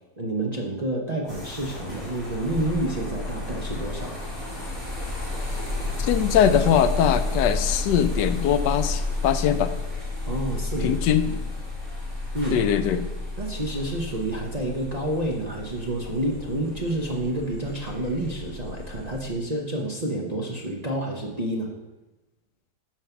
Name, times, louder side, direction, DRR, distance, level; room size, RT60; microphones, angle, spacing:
voice 1, 0.2-4.3 10.3-11.3 12.3-12.6 13.4-21.7, right 1 dB, 35° right, -2 dB, 0.7 m, -29 dB
sound 1, 1.3-19.3, left 2 dB, 55° right, 3.5 m, -31 dB
voice 2, 6.0-9.7 10.8-11.3 12.5-13.1, left 9 dB, 85° left, 11 dB, 1.3 m, -21 dB
9.1 x 5.5 x 5.8 m, 1.0 s
omnidirectional pair, 1.8 m